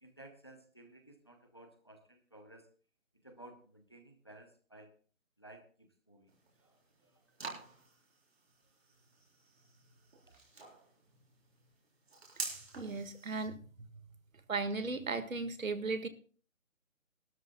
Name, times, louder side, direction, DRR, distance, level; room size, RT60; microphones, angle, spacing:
voice 1, 0.0-2.7 3.2-4.9 5.4-6.3 6.6-7.2 10.2-10.3, right 1 dB, 20° left, 7 dB, 0.8 m, -56 dB
sound 1, 6.3-13.5, right 3 dB, 50° right, 3.8 m, -48 dB
voice 2, 12.8-13.9 14.5-16.1, right 3 dB, 80° right, 11 dB, 1.7 m, -36 dB
20.0 x 12.5 x 2.2 m, 0.39 s
hypercardioid pair, 175°, 40 cm